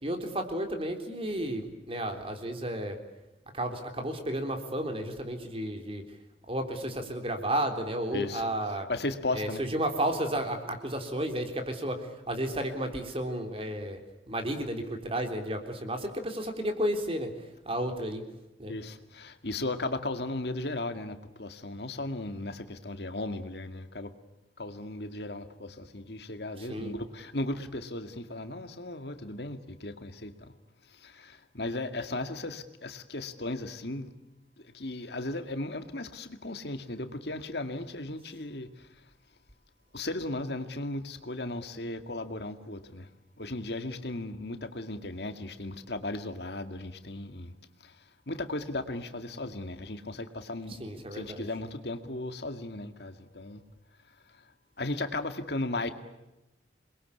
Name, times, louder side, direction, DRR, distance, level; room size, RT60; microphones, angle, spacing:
voice 1, 0.0-3.0 3.5-6.0 6.5-8.9 9.3-14.0 14.3-17.3 17.7-18.2 18.6-18.7 26.7-26.9 50.8-51.5, right 1 dB, 30° right, 6 dB, 3.6 m, -32 dB
voice 2, 8.1-9.6 18.7-24.1 24.6-30.5 30.8-34.1 34.6-38.9 39.9-43.1 43.4-47.5 47.8-53.6 54.1-54.4 54.8-55.9, left 2 dB, 65° left, 8 dB, 2.1 m, -36 dB
28.5 x 22.0 x 8.5 m, 0.97 s
head